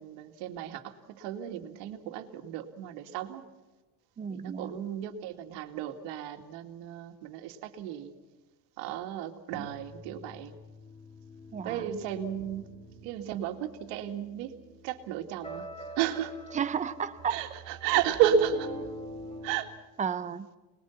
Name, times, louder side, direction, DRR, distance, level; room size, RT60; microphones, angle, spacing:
voice 1, 0.0-3.4 4.3-8.1 8.8-10.5 11.6-12.7 13.0-14.5 14.8-15.7 16.0-16.3 17.3-18.7 19.4-19.7, right 9 dB, 80° right, 6 dB, 2.3 m, -32 dB
voice 2, 4.2-4.8 9.6-9.7 11.5-12.0 16.5-17.4 20.0-20.5, right 7 dB, 20° right, 12 dB, 0.7 m, -33 dB
sound 1, 9.5-19.6, equal, 15° left, 3.1 m, -45 dB
26.0 x 21.0 x 5.8 m, 1.2 s
cardioid pair, 165°, 41 cm